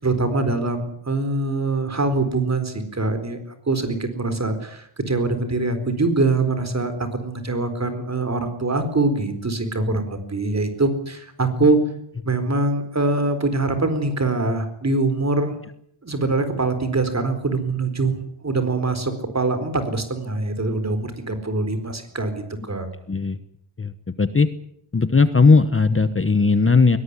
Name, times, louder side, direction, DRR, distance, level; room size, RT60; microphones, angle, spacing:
voice 1, 0.0-3.4 3.7-11.8 12.2-15.5 16.0-18.1 18.4-22.9, right 3 dB, 35° right, 9 dB, 4.3 m, -23 dB
voice 2, 24.2-24.5 24.9-27.0, left 4 dB, 25° left, 12 dB, 1.1 m, -17 dB
21.5 x 18.5 x 9.7 m, 0.70 s
wide cardioid pair, 150°, 48 cm